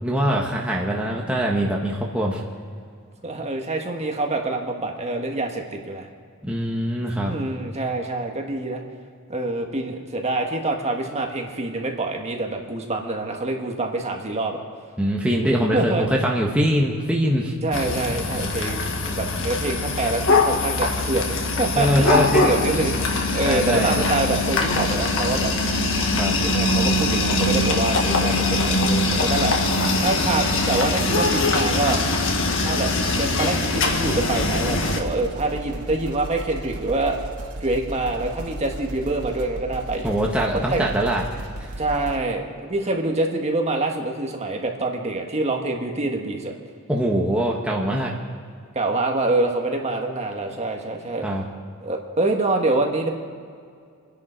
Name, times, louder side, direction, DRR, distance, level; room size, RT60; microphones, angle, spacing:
voice 1, 0.0-2.4 6.4-7.3 15.0-17.5 21.7-22.5 23.4-24.0 26.2-26.4 40.0-41.4 46.9-48.1 51.2-51.4, equal, 5° right, -2 dB, 1.3 m, -22 dB
voice 2, 3.2-6.1 7.3-8.8 9.3-14.6 15.7-16.0 17.6-23.0 23.3-25.5 26.3-29.5 30.0-32.0 32.6-37.2 37.6-40.1 40.7-40.8 41.8-46.5 48.7-51.3 51.8-53.1, right 2 dB, 30° right, 2 dB, 1.6 m, -26 dB
sound 1, 17.7-35.0, left 2 dB, 60° left, 1.6 m, -22 dB
sound 2, 33.8-42.2, right 1 dB, 85° right, 1.5 m, -35 dB
26.5 x 10.5 x 4.5 m, 2.2 s
head